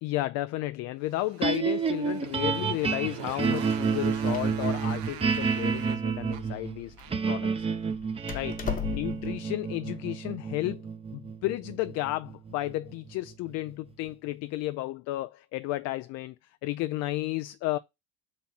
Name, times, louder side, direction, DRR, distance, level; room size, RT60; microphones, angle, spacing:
voice 1, 0.0-6.9 7.3-7.7 8.3-8.6 8.9-10.8 11.1-16.4 16.6-17.8, left 17 dB, 55° left, 0.5 m, -32 dB
Motorcycle, 1.1-7.4, right 12 dB, 80° right, 1.1 m, -44 dB
sound 1, 1.4-13.7, right 5 dB, 20° right, 0.7 m, -30 dB
Door, 3.8-9.4, left 9 dB, 25° left, 1.2 m, -40 dB
5.9 x 4.3 x 4.1 m
supercardioid pair, 115°, 31 cm